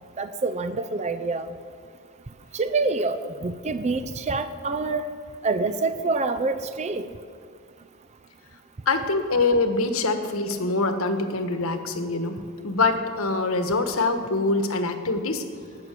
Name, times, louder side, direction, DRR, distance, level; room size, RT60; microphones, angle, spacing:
voice 1, 0.2-1.5 2.5-5.1 5.4-7.1, right 3 dB, 35° right, 10 dB, 0.5 m, -26 dB
voice 2, 8.9-12.4 12.6-15.4, left 3 dB, 90° left, 7 dB, 1.3 m, -24 dB
18.5 x 6.3 x 8.3 m, 2.2 s
head